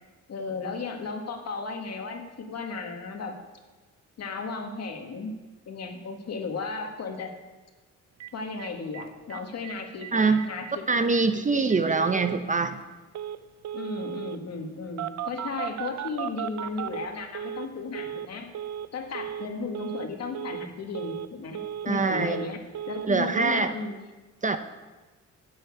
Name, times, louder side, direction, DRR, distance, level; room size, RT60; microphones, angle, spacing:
voice 1, 0.3-3.3 4.2-5.3 5.7-7.3 8.3-11.2 11.5-11.6 11.9-12.1 13.7-18.5 18.9-21.6 21.9-22.6 22.9-24.0, left 4 dB, 55° left, 3 dB, 1.9 m, -35 dB
Telephone, 8.2-8.3 8.6-8.7 8.9-9.0 9.3-9.7 10.0-10.1 10.4-10.7 11.1-11.2 11.7-12.4 13.1-13.4 13.6-14.4 15.0-17.7 17.9-18.3 18.5-18.9 19.1-19.5 19.7-20.1 20.3-20.7 20.9-21.3 21.5-22.5 22.7-23.1 23.3-23.6, right 10 dB, 60° right, 0.5 m, -35 dB
voice 2, 10.1-10.4 10.9-12.8 21.9-22.4 23.1-23.7 24.4-24.6, right 4 dB, 25° right, 9 dB, 0.7 m, -24 dB
10.0 x 6.4 x 8.3 m, 1.2 s
cardioid pair, 90°, 30 cm